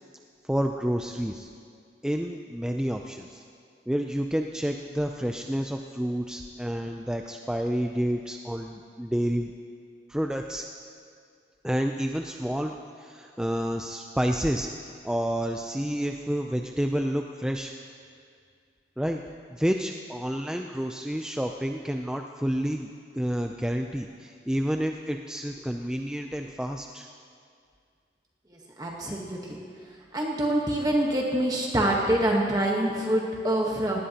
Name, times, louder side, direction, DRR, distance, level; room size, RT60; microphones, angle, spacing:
voice 1, 0.4-1.5 2.0-3.4 3.9-9.5 10.1-10.7 11.6-14.7 15.0-17.7 19.0-19.2 19.5-22.9 23.1-27.1, equal, 5° right, 3 dB, 0.4 m, -29 dB
voice 2, 28.5-29.6 30.1-34.0, right 1 dB, 20° right, -2 dB, 1.2 m, -26 dB
19.0 x 18.0 x 2.9 m, 2.2 s
head